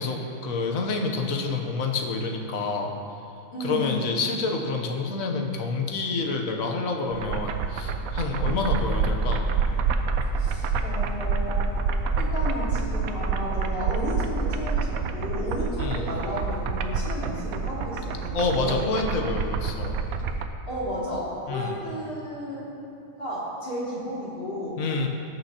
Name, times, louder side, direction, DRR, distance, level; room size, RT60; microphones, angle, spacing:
voice 1, 0.0-2.9 3.6-9.5 15.8-16.1 18.3-20.0 21.5-21.8 24.8-25.1, left 3 dB, 80° left, 2 dB, 1.3 m, -28 dB
voice 2, 3.5-4.1 8.4-8.6 10.4-11.7 12.2-18.9 20.7-22.7 23.2-24.8, left 1 dB, 45° left, -9 dB, 2.8 m, -33 dB
sound 1, 7.1-20.5, right 4 dB, 90° right, 1.0 m, -27 dB
18.5 x 6.3 x 2.9 m, 2.7 s
omnidirectional pair, 1.4 m